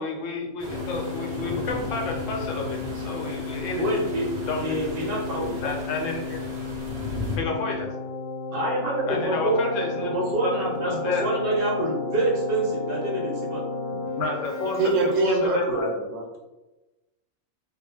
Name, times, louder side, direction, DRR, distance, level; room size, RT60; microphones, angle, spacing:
voice 1, 0.0-3.9 4.5-4.8 5.6-6.4 7.4-7.9 9.0-11.3 14.2-14.8 15.0-15.9, left 3 dB, 75° left, 1 dB, 0.9 m, -30 dB
sound 1, 0.6-7.4, left 1 dB, 35° right, 0.5 m, -36 dB
Keyboard (musical), 0.7-15.7, left 4 dB, 50° left, 0.5 m, -33 dB
voice 2, 3.8-4.3 4.6-5.6 8.5-9.6 10.1-13.6, right 1 dB, 50° right, -4 dB, 0.9 m, -26 dB
voice 3, 14.8-16.4, right 2 dB, 75° right, -1 dB, 1.0 m, -24 dB
2.3 x 2.1 x 3.2 m, 1.1 s
omnidirectional pair, 1.3 m